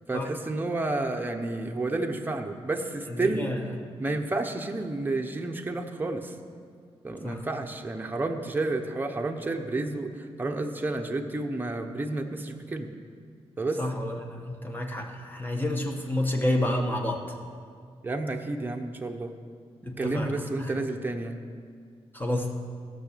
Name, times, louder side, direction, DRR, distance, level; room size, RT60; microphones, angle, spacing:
voice 1, 0.1-3.5 4.0-6.3 7.0-12.9 13.6-13.8 18.0-19.3 20.0-21.4, right 2 dB, 20° right, 3 dB, 0.9 m, -30 dB
voice 2, 3.1-3.6 7.2-7.4 13.8-17.4 19.9-20.7 22.1-22.5, left 1 dB, 20° left, 2 dB, 1.4 m, -29 dB
16.0 x 6.3 x 6.8 m, 2.1 s
wide cardioid pair, 110°, 11 cm